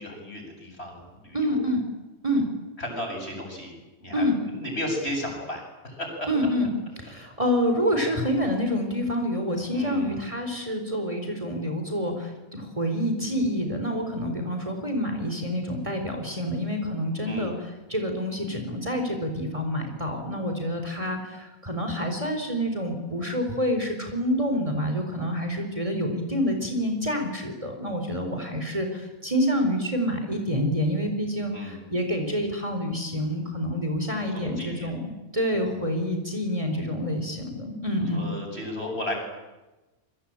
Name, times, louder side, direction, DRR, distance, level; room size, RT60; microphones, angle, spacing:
voice 1, 0.0-1.6 2.8-3.7 4.0-6.3 9.7-10.2 17.2-17.5 31.5-31.8 34.3-34.9 35.6-35.8 38.1-39.1, left 1 dB, 45° left, 2 dB, 8.2 m, -34 dB
voice 2, 1.3-1.8 2.2-2.5 4.1-4.4 6.3-38.3, equal, 20° right, 4 dB, 4.2 m, -27 dB
28.0 x 23.5 x 9.0 m, 1.1 s
omnidirectional pair, 1.5 m